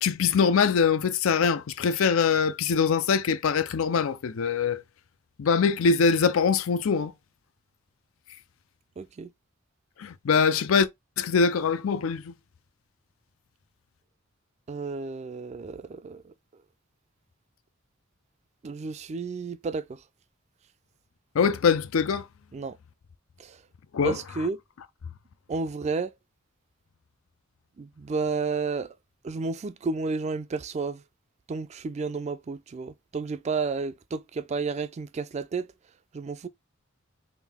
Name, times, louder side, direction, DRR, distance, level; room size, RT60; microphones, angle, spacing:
voice 1, 0.0-4.8 5.4-7.1 10.0-10.9 11.2-12.3 21.3-22.2 23.9-24.2, left 5 dB, 90° left, 0.5 m, -23 dB
voice 2, 9.0-9.3 14.7-16.2 18.6-19.8 22.5-22.7 24.0-24.6 25.5-26.1 27.8-28.9 29.2-31.0 31.5-35.7 36.1-36.5, right 4 dB, 35° right, 0.3 m, -31 dB
3.6 x 2.6 x 3.5 m
head